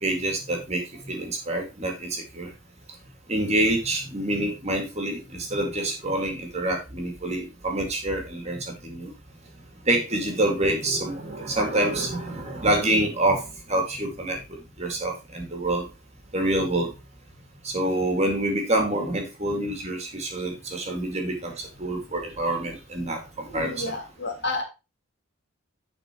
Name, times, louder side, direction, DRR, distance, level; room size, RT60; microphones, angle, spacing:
voice 1, 0.0-2.5 3.3-9.1 9.9-14.4 14.8-15.9 16.3-16.9 17.6-21.5 21.8-24.0, right 1 dB, 30° right, 3 dB, 2.2 m, -27 dB
voice 2, 23.5-24.6, left 2 dB, 50° left, 1 dB, 3.3 m, -31 dB
10.5 x 4.5 x 4.4 m, 0.27 s
head